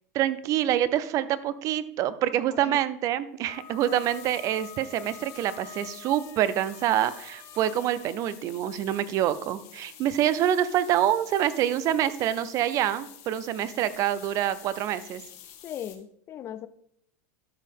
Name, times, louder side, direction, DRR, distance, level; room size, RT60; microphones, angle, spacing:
voice 1, 0.1-15.2, right 11 dB, 40° right, 16 dB, 0.6 m, -26 dB
voice 2, 2.5-2.8 3.8-4.0 15.6-16.7, left 10 dB, 30° left, 14 dB, 0.5 m, -38 dB
Wind instrument woodwind instrument, 3.4-8.2, left 7 dB, 70° left, 3.6 m, -48 dB
sound 1, 3.5-16.0, left 10 dB, 45° left, 1.5 m, -49 dB
12.5 x 5.5 x 3.6 m, 0.70 s
supercardioid pair, 125°, 8 cm